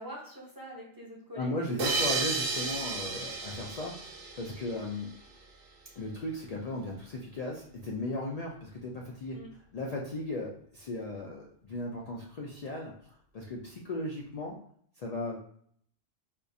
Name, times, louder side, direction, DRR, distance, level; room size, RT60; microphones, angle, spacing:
voice 1, 0.0-2.1 9.3-9.5, equal, 25° right, -4 dB, 0.6 m, -45 dB
voice 2, 1.4-5.1 6.0-9.4 9.7-12.9 13.3-14.6 15.0-15.4, left 2 dB, 75° left, -1 dB, 0.3 m, -36 dB
sound 1, 1.8-5.1, right 4 dB, 60° right, 0.7 m, -33 dB
4.5 x 2.4 x 2.6 m, 0.64 s
omnidirectional pair, 1.3 m